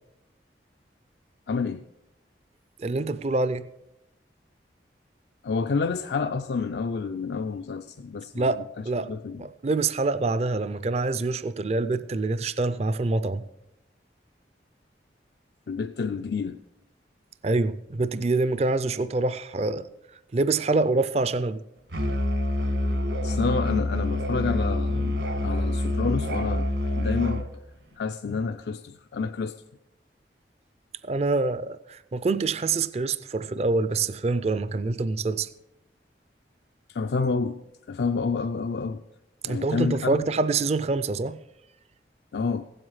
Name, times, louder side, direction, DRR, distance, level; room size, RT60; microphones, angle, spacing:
voice 1, 1.5-1.8 5.4-8.5 9.1-9.4 15.7-16.6 23.2-26.7 27.0-27.5 28.0-29.6 36.9-37.6 37.9-39.0 39.4-40.3 42.3-42.6, left 4 dB, 65° left, 0.4 m, -29 dB
voice 2, 2.8-3.6 8.3-9.1 9.4-13.4 17.4-19.9 20.3-21.6 31.0-35.5 39.4-41.4, right 3 dB, 35° right, 0.4 m, -26 dB
Musical instrument, 21.9-27.5, left 1 dB, 75° right, 1.5 m, -26 dB
15.5 x 7.9 x 5.6 m
head